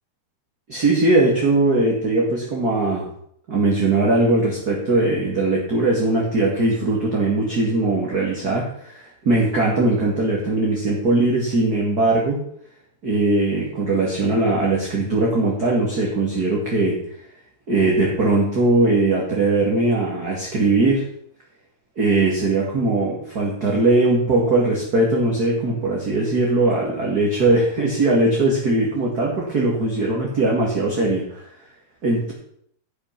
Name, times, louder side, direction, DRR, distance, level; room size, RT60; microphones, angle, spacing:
voice 1, 0.7-3.1 3.5-12.4 13.0-17.1 17.7-21.1 21.9-31.5 32.0-32.3, right 2 dB, 30° right, -3 dB, 1.9 m, -20 dB
13.5 x 6.2 x 5.9 m, 0.68 s
omnidirectional pair, 4.6 m